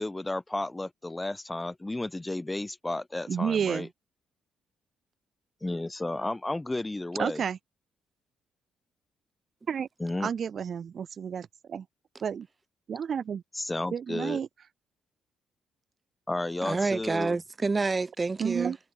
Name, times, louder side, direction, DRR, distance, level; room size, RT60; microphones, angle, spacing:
voice 1, 0.0-3.9 5.6-7.4 10.0-10.3 13.5-14.4 16.3-17.4, left 2 dB, 15° left, 7.7 m, -32 dB
voice 2, 3.3-3.9 7.2-7.6 9.7-9.9 10.2-11.9 12.2-12.5 12.9-13.4 13.9-14.5 18.4-18.8, right 7 dB, 50° right, 1.7 m, -30 dB
voice 3, 16.6-18.7, right 3 dB, 25° right, 1.1 m, -28 dB
cardioid pair, 90°, 0 cm